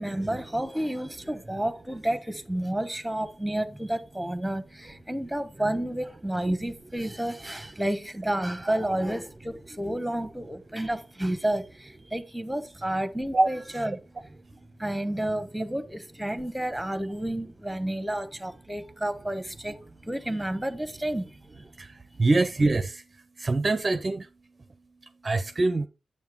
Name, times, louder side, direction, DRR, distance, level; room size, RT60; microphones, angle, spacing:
voice 1, 0.0-14.0 14.8-19.8 20.0-21.3, right 1 dB, ahead, 1.1 m, -30 dB
voice 2, 22.2-22.9 23.4-24.2 25.2-25.9, right 2 dB, 30° right, 0.6 m, -23 dB
9.6 x 7.5 x 3.5 m
wide cardioid pair, 115°, 0 cm